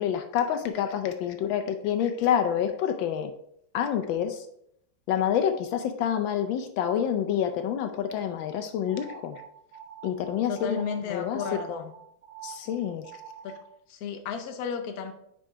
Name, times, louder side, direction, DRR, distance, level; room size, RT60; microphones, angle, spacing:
voice 1, 0.0-3.3 3.7-4.5 5.1-9.4 10.0-10.8 11.1-11.4 11.7-11.8 12.4-13.1, left 9 dB, 80° left, 7 dB, 1.3 m, -27 dB
sound 1, 8.9-13.8, right 9 dB, 65° right, 0.8 m, -46 dB
voice 2, 10.5-11.9 13.4-13.6 13.9-15.1, left 6 dB, 60° left, 6 dB, 1.1 m, -33 dB
5.5 x 5.3 x 3.7 m, 0.71 s
omnidirectional pair, 2.1 m